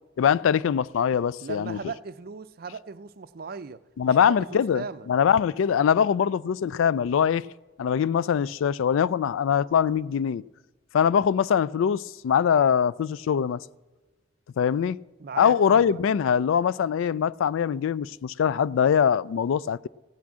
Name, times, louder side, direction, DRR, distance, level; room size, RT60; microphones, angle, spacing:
voice 1, 0.2-1.8 4.0-7.5 7.8-10.4 10.9-13.6 14.6-15.0 15.4-19.9, left 7 dB, 80° left, 0.3 m, -23 dB
voice 2, 1.4-5.1 15.2-16.0, right 5 dB, 50° right, 0.5 m, -38 dB
16.0 x 6.1 x 8.4 m
head